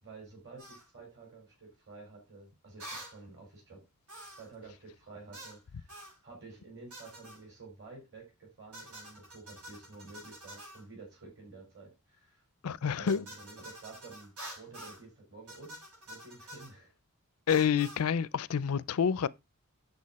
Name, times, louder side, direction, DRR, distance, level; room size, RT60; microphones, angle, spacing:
voice 1, 0.0-3.8 4.3-5.9 6.2-12.4 12.8-16.9, right 3 dB, 55° right, 4.4 m, -51 dB
sound 1, 0.6-0.8 2.8-3.2 4.1-4.5 5.3-5.6 5.9-6.2 6.9-7.4 8.7-10.8 13.1-15.0 15.5-16.7 17.5-18.0, right 1 dB, 85° right, 6.9 m, -48 dB
voice 2, 12.6-13.2 17.5-19.3, left 7 dB, 75° left, 0.4 m, -28 dB
8.5 x 6.9 x 4.1 m
head